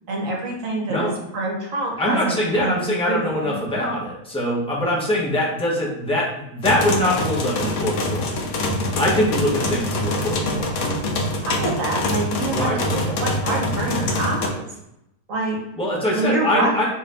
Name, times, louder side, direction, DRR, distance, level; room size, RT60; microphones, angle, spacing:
voice 1, 0.1-3.5 11.5-14.6 15.3-15.6 16.1-16.8, right 2 dB, 65° right, -1 dB, 1.2 m, -26 dB
voice 2, 2.0-6.3 6.5-8.3 9.0-10.7 12.5-12.8 15.8-16.8, left 1 dB, 5° left, -5 dB, 0.5 m, -23 dB
sound 1, 6.6-14.5, left 1 dB, 75° left, 1.0 m, -24 dB
3.1 x 2.6 x 3.2 m, 0.82 s
omnidirectional pair, 1.5 m